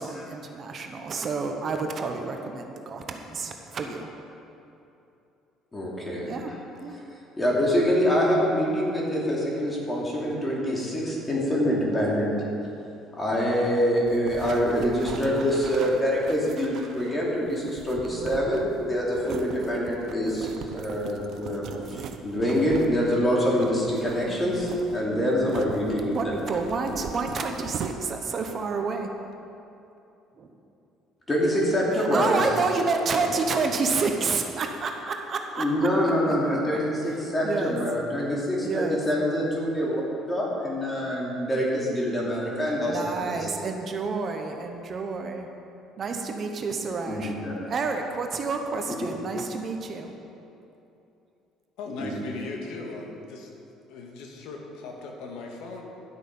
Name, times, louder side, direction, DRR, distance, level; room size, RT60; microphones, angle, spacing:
voice 1, 0.0-4.1 6.2-6.5 6.8-7.0 18.1-18.4 24.2-24.6 26.1-29.1 30.4-30.5 31.9-36.1 37.1-37.8 38.6-39.0 39.8-40.0 42.8-45.5 46.0-47.4 47.7-50.1, right 4 dB, 35° right, 4 dB, 1.0 m, -29 dB
voice 2, 5.7-6.3 7.4-12.3 13.2-26.3 31.3-32.4 33.2-33.3 35.6-40.0 40.3-43.0 43.2-43.4 47.1-47.5 52.0-52.1, equal, 15° left, -4 dB, 2.7 m, -25 dB
sound 1, 14.1-28.4, right 6 dB, 55° right, 0.7 m, -40 dB
voice 3, 51.8-53.5 53.9-55.8, left 3 dB, 85° left, 1 dB, 1.7 m, -38 dB
12.0 x 8.3 x 5.5 m, 2.8 s
cardioid pair, 135°, 0 cm